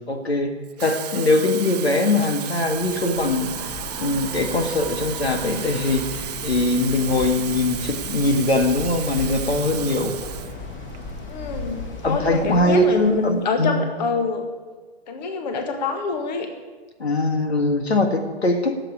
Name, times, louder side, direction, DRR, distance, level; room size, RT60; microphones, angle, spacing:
voice 1, 0.1-0.5 0.8-10.1 12.0-13.9 17.0-18.8, left 2 dB, 70° left, 6 dB, 1.8 m, -22 dB
Water tap faucet / Fill (with liquid), 0.6-10.6 10.9-11.2, right 10 dB, 40° right, 0.6 m, -34 dB
sound 1, 2.6-13.4, left 2 dB, 20° left, 2.3 m, -36 dB
Screaming, 3.0-6.7, right 4 dB, 10° right, 1.8 m, -43 dB
voice 2, 11.3-14.5 15.1-16.5, left 4 dB, 40° left, 6 dB, 1.7 m, -26 dB
13.0 x 8.0 x 9.8 m, 1.4 s
figure-of-eight pair, 120°, 33 cm